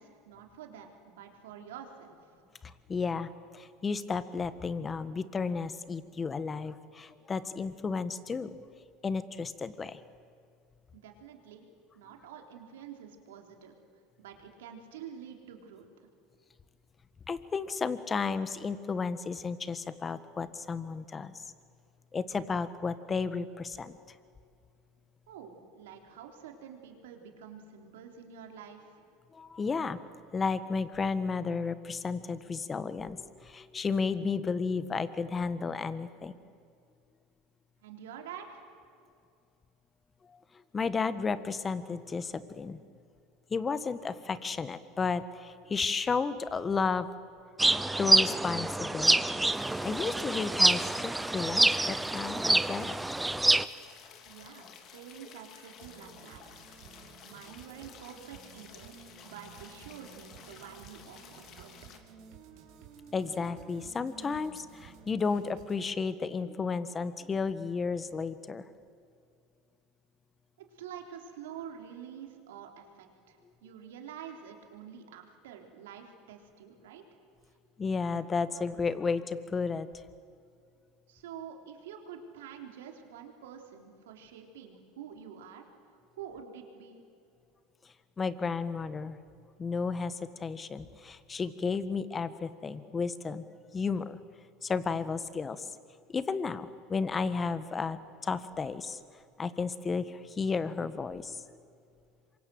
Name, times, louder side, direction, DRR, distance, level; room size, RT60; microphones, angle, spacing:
voice 1, 0.0-2.3 10.9-11.7 11.9-13.7 14.2-15.9 25.3-29.0 37.8-38.6 54.3-56.4 57.2-59.0 59.2-61.7 70.6-77.1 81.1-85.7 86.1-87.0, right 8 dB, 85° right, 3 dB, 3.8 m, -47 dB
voice 2, 2.6-8.5 9.0-10.0 17.3-21.4 22.1-24.0 29.3-30.0 30.3-36.3 40.2-40.4 40.7-42.8 43.5-47.1 48.0-53.0 63.1-68.6 77.8-80.0 88.2-89.2 89.6-93.5 93.7-94.2 94.6-95.7 96.1-99.0 99.4-101.4, left 5 dB, 25° left, 13 dB, 1.5 m, -33 dB
sound 1, 47.6-53.6, right 2 dB, 10° right, 0.8 m, -26 dB
sound 2, 49.4-62.0, left 7 dB, 50° left, 2.8 m, -53 dB
sound 3, 55.8-65.8, right 6 dB, 60° right, 4.5 m, -53 dB
27.0 x 24.0 x 7.9 m, 2.3 s
supercardioid pair, 100°, 0 cm